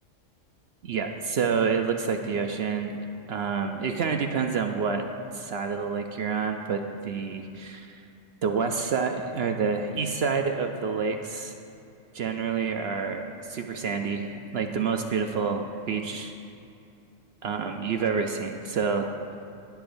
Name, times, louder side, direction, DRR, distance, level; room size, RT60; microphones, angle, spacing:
voice 1, 0.8-3.0 3.3-5.0 5.3-8.0 8.4-11.5 12.1-16.3 17.4-19.1, right 5 dB, 65° right, 5 dB, 0.7 m, -28 dB
19.5 x 7.0 x 2.6 m, 2.6 s
omnidirectional pair, 1.4 m